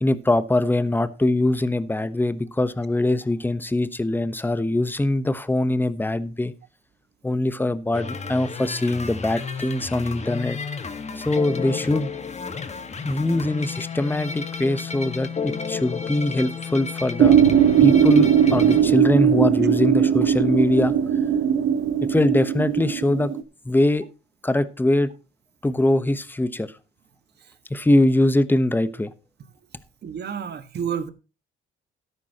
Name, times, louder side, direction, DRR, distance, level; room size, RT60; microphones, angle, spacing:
voice 1, 0.0-6.5 7.2-10.6 11.1-12.1 13.0-17.4 17.8-20.9 22.1-23.3 23.6-24.0 24.4-25.1 25.6-26.7 27.7-29.1, left 1 dB, 10° left, 1.0 m, -22 dB
sound 1, 7.9-18.8, left 5 dB, 35° left, 1.6 m, -32 dB
sound 2, 17.2-23.4, right 9 dB, 85° right, 1.5 m, -19 dB
voice 2, 30.0-31.1, right 7 dB, 55° right, 1.7 m, -29 dB
13.0 x 11.5 x 2.9 m
cardioid pair, 90°, 20 cm